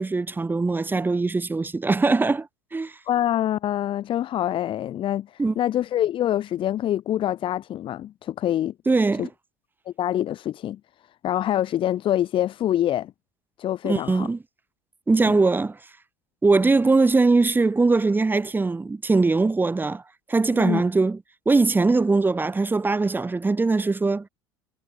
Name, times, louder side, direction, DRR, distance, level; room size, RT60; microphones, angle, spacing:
voice 1, 0.0-2.9 5.4-5.5 8.9-9.3 13.8-14.4 15.1-15.8 16.4-20.0 20.3-21.2 21.5-24.3, right 3 dB, 15° right, 7.8 m, -21 dB
voice 2, 3.1-8.7 9.2-9.3 9.9-10.8 11.2-13.1 13.6-14.3 15.2-15.4 20.5-20.8, left 12 dB, 45° left, 4.7 m, -25 dB
figure-of-eight pair, 70°, 12 cm